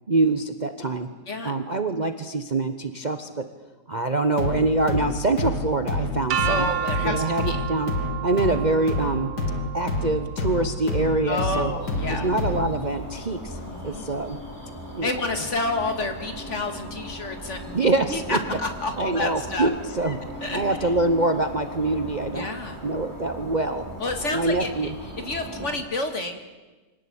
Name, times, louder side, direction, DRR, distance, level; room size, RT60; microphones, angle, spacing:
voice 1, 0.1-1.1 1.4-3.5 3.9-6.7 7.0-7.9 8.2-9.3 9.7-11.7 12.1-14.4 14.9-15.1 17.7-18.4 19.0-20.2 20.5-22.5 22.8-23.8 24.2-24.9 25.6-25.7, right 2 dB, 35° right, 8 dB, 0.9 m, -25 dB
sound 1, 4.4-12.9, left 2 dB, 80° left, 2.8 m, -29 dB
sound 2, 6.3-12.2, right 11 dB, 75° right, 1.9 m, -32 dB
voice 2, 6.4-7.6 11.3-12.3 13.6-14.0 15.0-17.8 18.1-19.7 20.1-20.2 20.4-20.9 22.3-22.8 24.0-26.4, left 2 dB, 45° left, 7 dB, 2.3 m, -30 dB
sound 3, 11.8-25.8, equal, 10° right, 7.9 m, -38 dB
24.5 x 18.0 x 8.8 m, 1.2 s
omnidirectional pair, 1.7 m